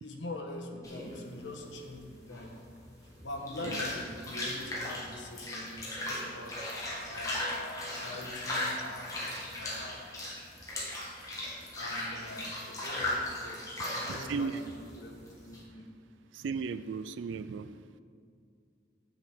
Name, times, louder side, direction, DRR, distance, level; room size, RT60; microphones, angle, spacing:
voice 1, 0.0-2.5 3.2-6.6 7.1-9.1 9.6-10.1 11.3-11.5 11.7-15.9, left 1 dB, 80° left, 2 dB, 1.2 m, -44 dB
sound 1, 0.8-15.6, left 1 dB, 20° left, 1.8 m, -37 dB
voice 2, 14.1-14.5 16.3-17.7, right 5 dB, 85° right, 13 dB, 0.4 m, -35 dB
7.8 x 7.0 x 5.9 m, 2.4 s
head